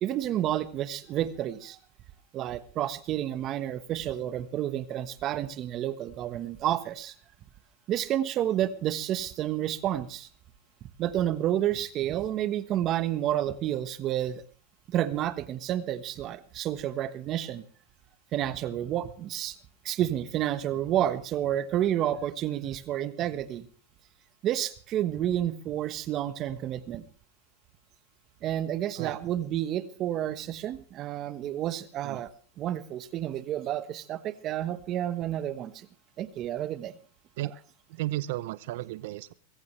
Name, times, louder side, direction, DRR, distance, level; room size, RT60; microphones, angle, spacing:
voice 1, 0.0-1.8 2.3-7.1 7.9-10.3 11.0-14.4 14.9-17.6 18.3-19.6 19.8-23.7 24.4-27.1 28.4-32.3 32.6-35.9 36.2-37.0 37.4-37.5, right 12 dB, 35° right, 13 dB, 1.3 m, -30 dB
voice 2, 37.9-39.3, right 16 dB, 65° right, 17 dB, 0.7 m, -34 dB
23.5 x 14.5 x 3.3 m, 0.42 s
supercardioid pair, 135°, 0 cm